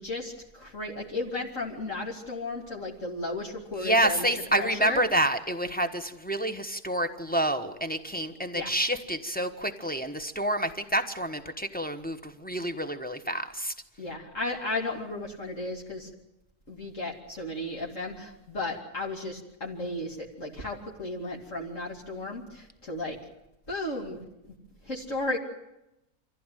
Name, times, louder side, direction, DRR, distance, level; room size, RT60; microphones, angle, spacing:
voice 1, 0.0-4.3 4.6-5.0 8.5-8.7 14.0-16.1 16.7-23.2 23.7-24.2 24.5-24.6 24.8-25.4, left 2 dB, 55° left, -2 dB, 2.9 m, -34 dB
voice 2, 3.7-13.7, right 1 dB, 5° left, 4 dB, 1.0 m, -28 dB
25.0 x 15.0 x 9.2 m, 0.90 s
omnidirectional pair, 1.6 m